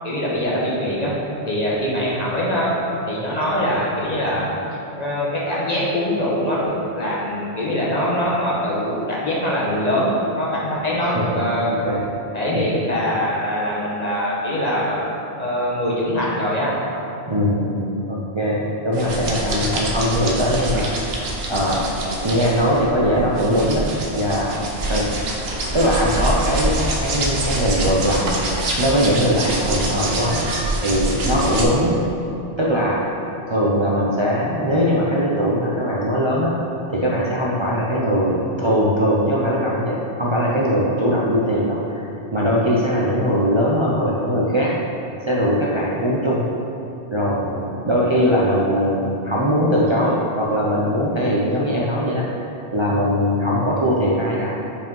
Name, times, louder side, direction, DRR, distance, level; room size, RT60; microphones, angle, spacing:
voice 1, 0.0-1.1 1.5-2.7 3.0-4.4 4.9-12.0 12.3-15.0 15.4-16.7, equal, 40° left, -6 dB, 1.3 m, -23 dB
voice 2, 11.6-12.0 12.5-12.6 17.3-24.6 24.9-25.1 25.7-30.5 30.8-32.0 32.6-33.0 33.5-36.6 36.9-42.0 42.3-44.7 45.3-46.4 47.1-52.3 52.7-54.5, equal, 30° right, -6 dB, 0.6 m, -20 dB
sound 1, 18.9-31.6, right 1 dB, 65° right, 1.0 m, -25 dB
5.3 x 5.0 x 5.3 m, 2.8 s
omnidirectional pair, 1.1 m